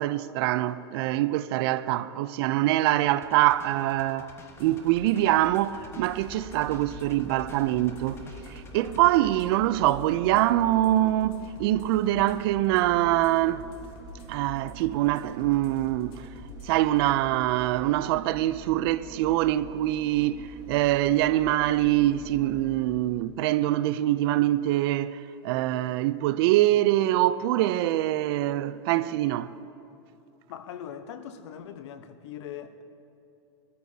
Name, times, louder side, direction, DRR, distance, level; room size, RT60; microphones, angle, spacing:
voice 1, 0.0-4.3 4.6-8.2 8.5-13.6 14.3-16.3 16.6-29.5, right 15 dB, 60° right, 0.5 m, -24 dB
sound 1, 3.2-9.4, left 2 dB, 15° left, 1.2 m, -50 dB
sound 2, 4.5-17.1, left 3 dB, 35° left, 1.7 m, -49 dB
sound 3, 5.9-23.2 23.6-23.7, right 2 dB, 25° right, 1.8 m, -46 dB
voice 2, 30.5-32.8, left 9 dB, 70° left, 1.0 m, -41 dB
23.5 x 13.5 x 2.8 m
supercardioid pair, 130°, 15 cm